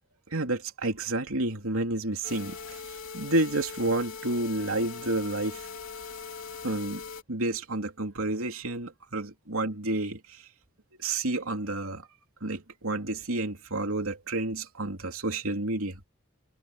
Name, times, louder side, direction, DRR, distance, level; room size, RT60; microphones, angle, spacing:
voice 1, 0.3-2.8 3.1-5.7 6.6-7.0 7.3-10.4 11.0-12.1 12.4-16.0, right 2 dB, 70° right, 3.0 m, -30 dB
sound 1, 2.2-7.2, left 5 dB, 65° left, 3.1 m, -41 dB
head